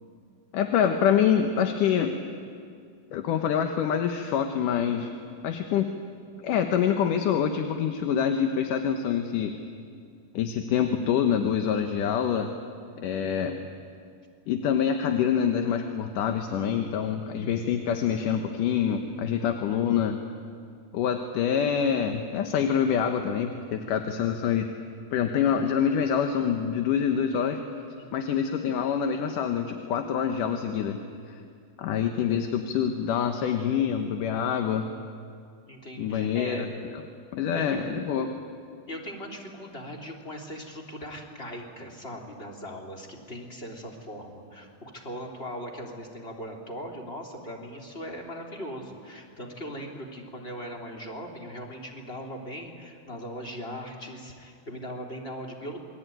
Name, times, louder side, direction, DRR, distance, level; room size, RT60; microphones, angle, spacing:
voice 1, 0.5-2.1 3.1-5.1 5.4-5.9 6.4-9.6 10.3-12.5 13.0-13.6 14.5-20.2 20.9-24.7 25.1-27.6 28.1-31.0 31.3-31.4 31.8-34.9 36.0-36.7 37.3-38.3, left 8 dB, 70° left, 5 dB, 2.5 m, -26 dB
voice 2, 35.7-36.7 37.5-37.8 38.9-55.8, equal, 15° left, 0 dB, 3.0 m, -39 dB
27.5 x 22.5 x 9.2 m, 2.3 s
omnidirectional pair, 4.2 m